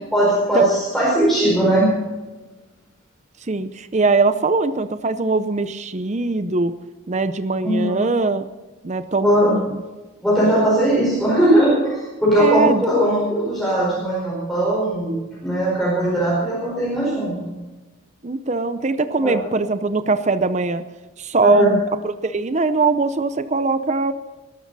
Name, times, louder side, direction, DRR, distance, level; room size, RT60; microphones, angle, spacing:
voice 1, 0.0-1.9 7.6-8.0 9.2-9.5 10.2-15.1 15.4-17.5 19.1-19.4 21.4-21.7, right 1 dB, ahead, -6 dB, 4.5 m, -19 dB
voice 2, 3.5-6.7 7.1-8.4 8.8-9.8 12.4-12.9 18.2-20.8 21.2-24.1, right 3 dB, 35° right, 11 dB, 0.6 m, -21 dB
21.0 x 12.0 x 4.1 m, 1.2 s
head